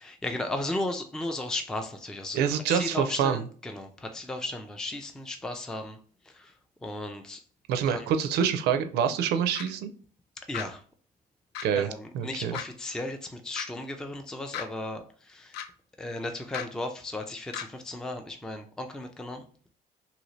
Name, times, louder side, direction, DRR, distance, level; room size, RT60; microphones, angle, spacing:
voice 1, 0.0-6.0 6.2-6.5 6.8-7.4 7.9-8.2 10.5-10.8 11.8-15.6 16.0-19.4, left 2 dB, 5° left, 5 dB, 0.3 m, -35 dB
voice 2, 2.3-3.4 7.7-9.9 11.6-11.9 12.1-12.5, right 8 dB, 75° right, 8 dB, 0.4 m, -26 dB
sound 1, 9.5-9.7 10.5-10.7 11.5-11.7 12.5-12.6 13.5-13.7 14.5-14.7 15.5-15.7 16.5-16.7 17.5-17.7, left 9 dB, 80° left, 0.4 m, -35 dB
2.8 x 2.6 x 3.0 m, 0.43 s
cardioid pair, 110°, 17 cm